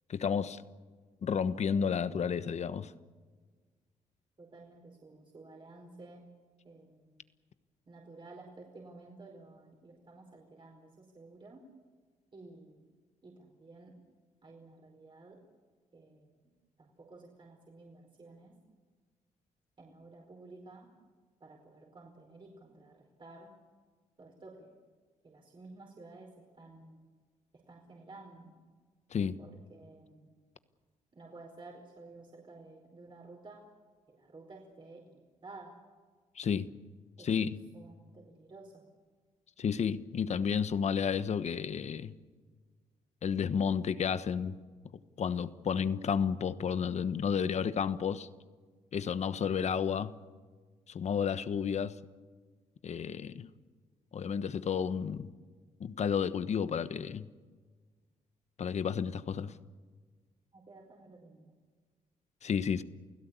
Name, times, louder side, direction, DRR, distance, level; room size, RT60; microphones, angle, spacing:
voice 1, 0.1-0.6 1.2-2.9 29.1-29.4 36.4-36.7 37.2-37.6 39.6-42.2 43.2-44.6 45.2-48.3 48.9-50.1 50.9-52.0 52.8-53.5 54.1-55.3 55.8-57.3 58.6-59.6 62.4-62.8, left 7 dB, 60° left, 1.2 m, -31 dB
voice 2, 4.4-6.2 6.6-7.2 7.9-11.6 12.3-12.8 13.2-13.9 14.4-15.4 15.9-16.3 16.8-18.6 19.8-20.9 21.4-23.5 24.2-24.7 25.2-26.3 26.6-27.0 27.7-28.5 29.4-30.3 31.1-33.7 34.1-35.0 35.4-35.8 37.2-37.3 37.7-38.8 60.5-61.5, right 2 dB, 40° right, 4.8 m, -53 dB
29.0 x 16.5 x 8.4 m
cardioid pair, 70°, 13 cm